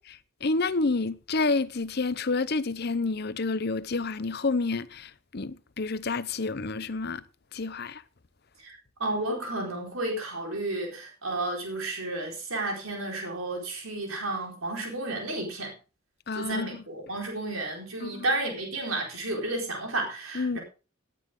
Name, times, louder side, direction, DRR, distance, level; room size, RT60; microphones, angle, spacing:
voice 1, 0.4-7.2 7.5-8.0 16.3-16.8 18.0-18.3 20.3-20.6, left 3 dB, 50° left, 0.7 m, -29 dB
voice 2, 8.6-15.7 16.3-20.6, right 2 dB, 85° right, 4.4 m, -32 dB
18.5 x 9.4 x 3.7 m
head